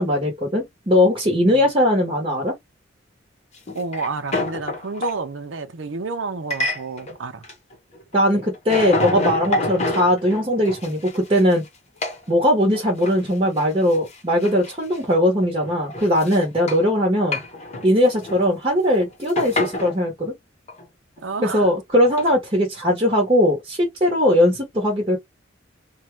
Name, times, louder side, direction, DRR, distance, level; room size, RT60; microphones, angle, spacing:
voice 1, 0.0-2.5 8.1-11.6 12.3-17.4 17.8-20.3 21.4-25.2, left 1 dB, 25° right, 1.0 m, -19 dB
sound 1, 3.6-5.1 6.5-7.1 7.4-8.2 8.4-11.7 12.0-12.2 12.7-13.3 13.6-13.7 13.9-15.0 15.4-16.9 17.2-18.5 18.7-20.0 20.7-20.8 22.2-22.3, left 2 dB, 35° left, 0.9 m, -27 dB
voice 2, 3.7-7.4 21.2-21.7, right 4 dB, 70° right, 0.6 m, -30 dB
2.7 x 2.3 x 3.1 m
head